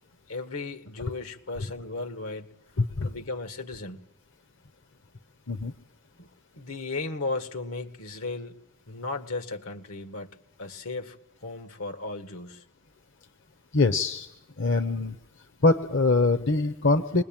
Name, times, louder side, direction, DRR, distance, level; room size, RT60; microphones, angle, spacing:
voice 1, 0.3-2.5 3.0-4.0 6.2-6.3 6.6-8.6 8.9-10.3 10.6-12.6, left 3 dB, 85° left, 6 dB, 2.0 m, -35 dB
voice 2, 2.8-3.1 5.5-5.7 13.7-14.3 14.6-15.1 15.6-17.2, left 3 dB, 60° left, 10 dB, 1.0 m, -23 dB
27.0 x 21.0 x 9.0 m, 0.85 s
head